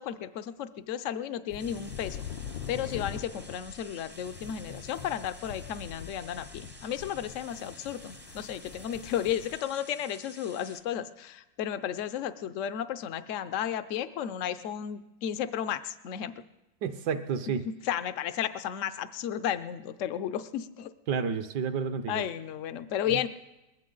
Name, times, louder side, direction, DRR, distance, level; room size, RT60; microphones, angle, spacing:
voice 1, 0.0-2.3 2.7-16.4 17.6-20.9 22.1-23.3, left 10 dB, 70° left, 12 dB, 0.7 m, -33 dB
sound 1, 1.5-9.6, left 8 dB, 90° left, 1.5 m, -43 dB
sound 2, 1.6-10.8, right 1 dB, 10° right, 0.4 m, -51 dB
voice 2, 16.8-17.6 21.1-22.2 23.1-23.3, right 6 dB, 70° right, 9 dB, 1.4 m, -31 dB
21.0 x 15.0 x 3.9 m, 0.99 s
omnidirectional pair, 2.0 m